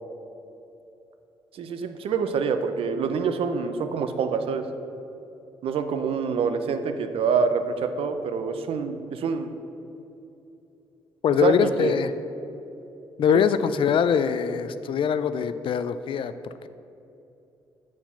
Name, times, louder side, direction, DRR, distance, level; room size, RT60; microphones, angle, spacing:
voice 1, 1.5-4.6 5.6-9.5 11.4-11.9 13.3-13.4, right 5 dB, 70° right, 8 dB, 0.6 m, -26 dB
voice 2, 11.2-12.1 13.2-16.3, left 7 dB, 60° left, 12 dB, 0.4 m, -23 dB
7.2 x 4.7 x 5.6 m, 2.9 s
supercardioid pair, 55°, 10 cm